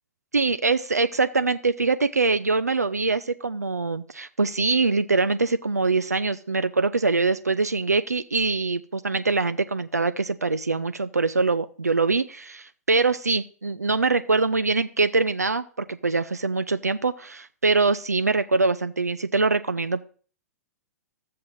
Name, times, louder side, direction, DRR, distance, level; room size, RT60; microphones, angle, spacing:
voice 1, 0.3-20.0, right 3 dB, 85° right, 11 dB, 0.4 m, -23 dB
13.5 x 7.7 x 2.6 m, 0.43 s
figure-of-eight pair, 105°, 8 cm